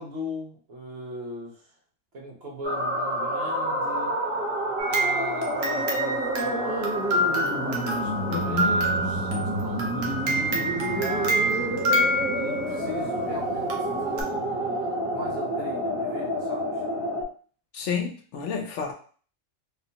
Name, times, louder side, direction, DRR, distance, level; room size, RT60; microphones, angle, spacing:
voice 1, 0.0-1.7 2.1-4.2 4.9-11.8 12.3-16.8, equal, 55° right, -3 dB, 1.1 m, -39 dB
sound 1, 2.6-17.2, right 1 dB, 15° right, 0.6 m, -29 dB
sound 2, 4.8-12.8 13.7-14.2, right 1 dB, 80° right, 1.1 m, -27 dB
voice 2, 8.3-8.8 17.7-18.9, left 6 dB, 70° left, 3 dB, 0.9 m, -29 dB
3.5 x 2.0 x 2.8 m, 0.41 s
omnidirectional pair, 1.3 m